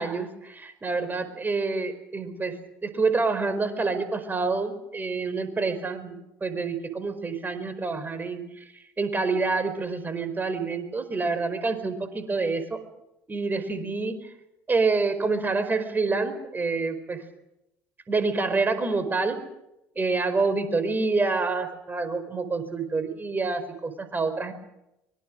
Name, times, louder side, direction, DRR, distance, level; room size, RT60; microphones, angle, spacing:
voice 1, 0.0-2.5 2.8-6.2 6.4-8.7 9.0-12.8 13.3-14.1 14.7-17.2 18.1-19.4 20.0-24.5, right 3 dB, 25° right, 10 dB, 4.8 m, -27 dB
24.5 x 23.0 x 6.4 m, 0.87 s
figure-of-eight pair, 60°, 8 cm